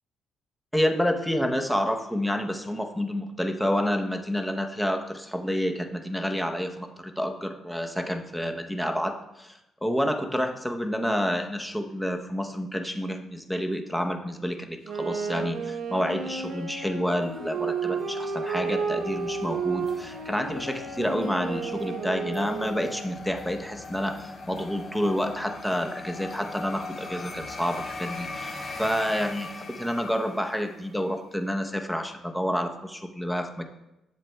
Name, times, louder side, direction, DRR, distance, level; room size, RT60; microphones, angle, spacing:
voice 1, 0.7-33.7, equal, 5° left, 4 dB, 0.8 m, -29 dB
Wind instrument woodwind instrument, 14.8-23.1, right 5 dB, 75° right, 0.9 m, -32 dB
sound 1, 16.3-31.0, left 3 dB, 35° left, 1.7 m, -41 dB
10.5 x 7.4 x 2.2 m, 0.91 s
cardioid pair, 90°, 0 cm